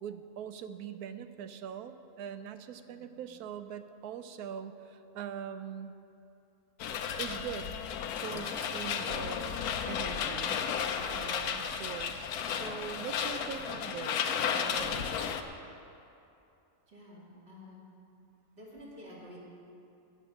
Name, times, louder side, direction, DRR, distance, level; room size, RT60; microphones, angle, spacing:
voice 1, 0.0-5.9 7.2-7.8 8.2-10.6 11.1-15.1, right 8 dB, 80° right, 10 dB, 1.1 m, -42 dB
voice 2, 2.9-3.2 11.5-11.7 16.9-17.9 18.5-19.4, left 1 dB, 45° right, -5 dB, 2.9 m, -51 dB
sound 1, 6.8-15.4, left 7 dB, 85° left, 1.2 m, -33 dB
17.5 x 6.6 x 6.4 m, 2.7 s
omnidirectional pair, 1.6 m